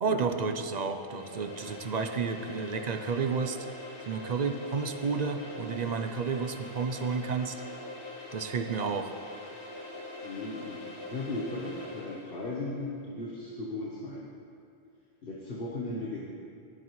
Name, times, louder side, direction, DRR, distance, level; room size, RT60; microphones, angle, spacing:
voice 1, 0.0-3.6 4.1-7.6 8.3-9.1, right 5 dB, 50° right, 8 dB, 0.7 m, -31 dB
sound 1, 0.8-12.5, left 2 dB, 90° left, 1.9 m, -43 dB
voice 2, 10.2-14.3 15.2-16.2, left 2 dB, 65° left, -4 dB, 1.4 m, -37 dB
18.5 x 9.9 x 3.1 m, 2.4 s
omnidirectional pair, 1.1 m